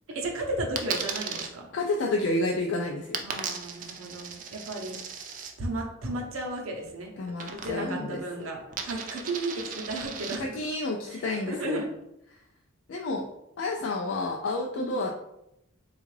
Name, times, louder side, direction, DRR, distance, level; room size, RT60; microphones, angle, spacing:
voice 1, 0.1-1.7 3.2-5.0 5.6-7.1 7.5-10.6 11.1-11.9 14.7-15.0, right 1 dB, 75° right, 0 dB, 0.6 m, -34 dB
Coin (dropping), 0.8-1.5 3.1-5.5 7.4-8.0 8.3-10.4, right 6 dB, 40° right, 0.3 m, -36 dB
voice 2, 1.7-3.2 7.2-8.5 10.4-11.8 12.9-13.3 13.6-15.2, left 2 dB, 60° left, 1 dB, 0.3 m, -30 dB
3.6 x 2.3 x 3.1 m, 0.83 s
head